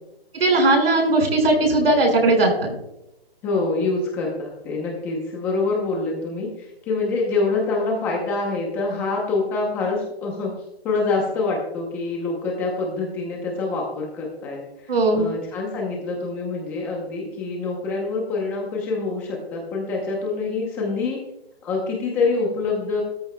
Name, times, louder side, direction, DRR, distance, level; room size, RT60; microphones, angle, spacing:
voice 1, 0.3-2.7 14.9-15.3, right 2 dB, 70° right, 2 dB, 5.2 m, -18 dB
voice 2, 3.4-10.6 10.8-21.2 21.6-23.0, left 3 dB, 5° left, -2 dB, 0.7 m, -26 dB
16.5 x 13.5 x 2.2 m, 0.88 s
hypercardioid pair, 165°, 31 cm